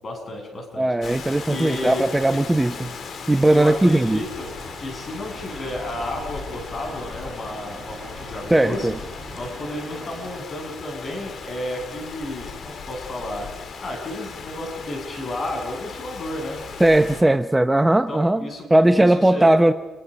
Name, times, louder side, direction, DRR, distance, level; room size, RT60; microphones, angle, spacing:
voice 1, 0.0-2.4 3.5-8.9 9.3-13.5 13.8-16.6 18.1-19.5, left 1 dB, 40° left, 2 dB, 7.2 m, -32 dB
voice 2, 0.8-2.9 3.3-4.2 8.5-8.9 16.8-19.7, right 1 dB, 10° right, 10 dB, 0.8 m, -18 dB
Rain, 1.0-17.2, left 5 dB, 55° left, 2.4 m, -37 dB
sound 1, 3.8-10.4, right 4 dB, 35° right, 5.3 m, -43 dB
29.0 x 22.5 x 5.3 m, 1.1 s
cardioid pair, 90°, 0 cm